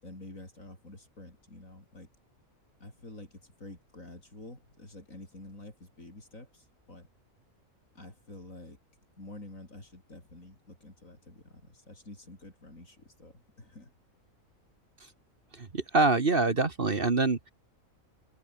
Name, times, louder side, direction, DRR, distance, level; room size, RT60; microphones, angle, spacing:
voice 1, 0.0-2.1 2.8-7.1 7.9-8.8 9.2-13.9, left 1 dB, 65° left, 7.8 m, -49 dB
voice 2, 15.5-17.5, right 3 dB, 40° right, 1.7 m, -25 dB
omnidirectional pair, 1.5 m